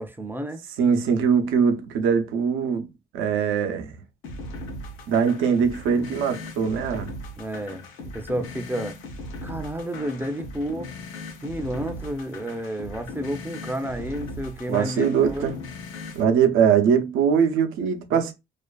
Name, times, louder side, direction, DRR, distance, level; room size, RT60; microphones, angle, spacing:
voice 1, 0.0-0.6 7.4-7.8 8.1-9.0 9.4-10.9 11.4-15.5, right 1 dB, 10° right, 0.4 m, -31 dB
voice 2, 0.8-2.9 3.1-4.0 5.1-7.1 14.7-15.6 16.1-18.3, right 7 dB, 90° right, 0.6 m, -21 dB
sound 1, 4.2-16.2, left 2 dB, 90° left, 0.6 m, -38 dB
2.5 x 2.4 x 2.2 m
cardioid pair, 90°, 20 cm